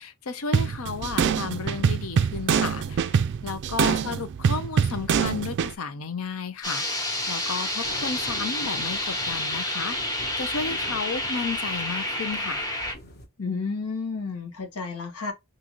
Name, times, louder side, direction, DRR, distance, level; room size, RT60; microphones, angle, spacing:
voice 1, 0.0-12.7, left 5 dB, 70° left, 0.6 m, -33 dB
sound 1, 0.5-5.7, right 6 dB, 55° right, 0.3 m, -24 dB
sound 2, 6.6-12.9, left 1 dB, 15° left, 1.0 m, -29 dB
sound 3, 7.0-13.3, left 1 dB, 50° left, 1.2 m, -44 dB
voice 2, 13.4-15.3, left 4 dB, 90° left, 1.1 m, -31 dB
3.8 x 2.6 x 2.9 m
head